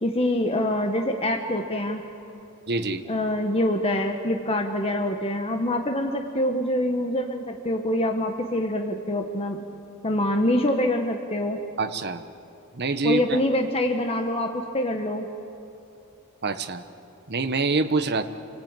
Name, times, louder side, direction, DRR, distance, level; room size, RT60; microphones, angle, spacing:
voice 1, 0.0-2.0 3.1-9.6 10.0-11.6 13.0-15.3, left 1 dB, 25° left, 3 dB, 1.3 m, -25 dB
voice 2, 2.7-3.0 11.8-12.2 12.7-13.4 16.4-16.8 17.3-18.2, right 3 dB, 50° right, 9 dB, 1.2 m, -25 dB
29.0 x 19.0 x 9.0 m, 2.8 s
head